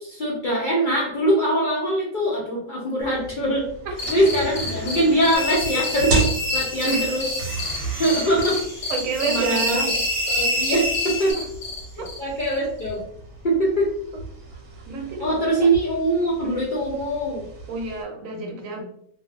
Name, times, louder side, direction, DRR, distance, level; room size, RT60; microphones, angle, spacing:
voice 1, 0.0-3.6 4.1-7.2 8.0-8.9 9.3-9.8 10.3-11.4 12.2-13.1 13.4-13.9 15.2-17.4, right 1 dB, 80° left, -5 dB, 0.4 m, -22 dB
sound 1, 3.0-18.0, right 3 dB, 90° right, 1.2 m, -34 dB
voice 2, 3.8-4.2 6.8-7.1 8.9-9.9 11.3-11.5 12.0-12.1 14.1-14.2 14.9-15.7 16.4-16.6 17.7-18.8, right 3 dB, 70° right, 2 dB, 0.9 m, -29 dB
sound 2, 4.0-12.9, left 3 dB, 65° left, 0.8 m, -32 dB
sound 3, 5.3-11.3, left 1 dB, 30° right, 0.6 m, -27 dB
2.5 x 2.3 x 2.4 m, 0.68 s
omnidirectional pair, 1.5 m